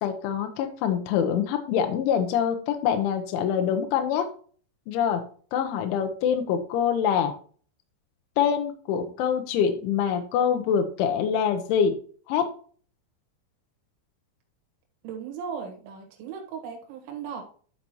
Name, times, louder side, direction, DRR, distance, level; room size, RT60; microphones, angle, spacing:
voice 1, 0.0-4.3 4.9-5.2 5.5-7.3 8.4-12.0 12.3-12.5, left 8 dB, 85° left, 6 dB, 3.3 m, -25 dB
voice 2, 15.0-17.4, right 6 dB, 75° right, 1 dB, 3.8 m, -37 dB
11.5 x 5.4 x 3.0 m, 0.43 s
omnidirectional pair, 5.5 m